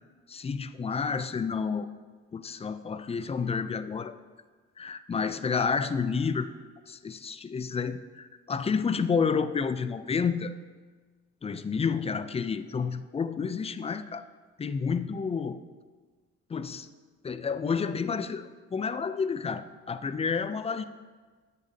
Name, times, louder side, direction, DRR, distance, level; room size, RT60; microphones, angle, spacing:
voice 1, 0.3-1.9 2.3-4.1 4.8-6.5 6.9-10.5 11.4-14.3 14.6-15.6 16.5-16.9 17.2-20.8, left 5 dB, 20° left, 12 dB, 0.3 m, -30 dB
10.0 x 8.3 x 2.7 m, 1.4 s
cardioid pair, 90°, 30 cm